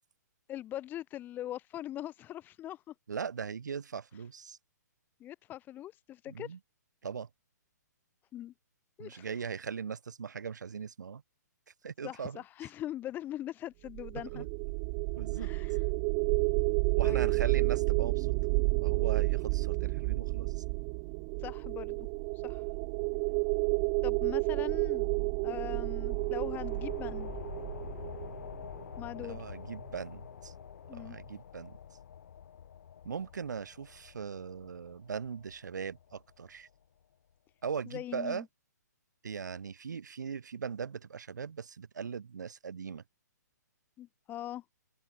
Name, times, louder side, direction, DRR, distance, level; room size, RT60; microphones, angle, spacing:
voice 1, 0.5-2.9 5.2-6.6 8.3-8.5 9.0-9.5 12.0-14.4 15.3-15.8 17.0-17.4 21.4-22.1 22.3-22.7 24.0-25.1 25.4-27.3 29.0-29.4 30.9-31.2 37.9-38.5 44.0-44.6, left 13 dB, 20° left, 1.5 m, -42 dB
voice 2, 3.1-4.6 6.3-6.6 7.0-7.3 9.0-11.2 11.8-12.4 14.3-14.5 15.2-15.5 17.0-18.3 18.8-20.6 29.2-30.5 30.9-31.8 33.0-36.7 37.6-38.4 39.2-43.0, right 6 dB, 75° right, 2.6 m, -39 dB
sound 1, 13.9-29.0, right 40 dB or more, 30° right, 0.5 m, -31 dB
sound 2, 25.5-36.7, left 8 dB, 60° left, 7.4 m, -47 dB
open air
hypercardioid pair, 140°, 10 cm